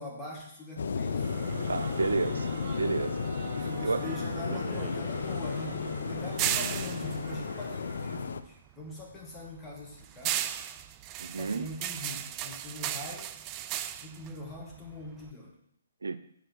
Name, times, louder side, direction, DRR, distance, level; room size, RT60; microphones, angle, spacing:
voice 1, 0.0-1.3 3.5-10.4 11.3-13.3 14.0-15.6, left 1 dB, 10° left, -3 dB, 2.1 m, -43 dB
sound 1, 0.8-8.4, left 5 dB, 70° left, 0.6 m, -34 dB
sound 2, 1.0-8.3, right 3 dB, 45° right, 1.4 m, -42 dB
voice 2, 1.7-2.5 2.8-3.2 3.8-4.0 11.2-11.7 16.0-16.2, right 3 dB, 85° right, 11 dB, 0.6 m, -30 dB
sound 3, 4.0-8.5 8.9-15.3, right 11 dB, 25° right, 0.4 m, -36 dB
8.2 x 4.6 x 6.2 m, 0.70 s
hypercardioid pair, 145°, 0 cm